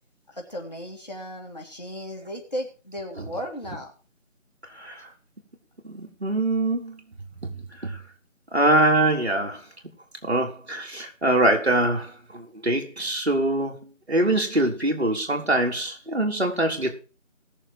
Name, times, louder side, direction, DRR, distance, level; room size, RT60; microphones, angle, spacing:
voice 1, 0.3-3.9, equal, 30° left, 2.5 m, -35 dB
voice 2, 5.8-7.0 7.4-7.5 7.8-8.0 8.5-9.6 10.2-13.8 14.1-17.0, right 1 dB, 50° right, 3.9 m, -23 dB
19.0 x 7.3 x 4.5 m
figure-of-eight pair, 170°, 39 cm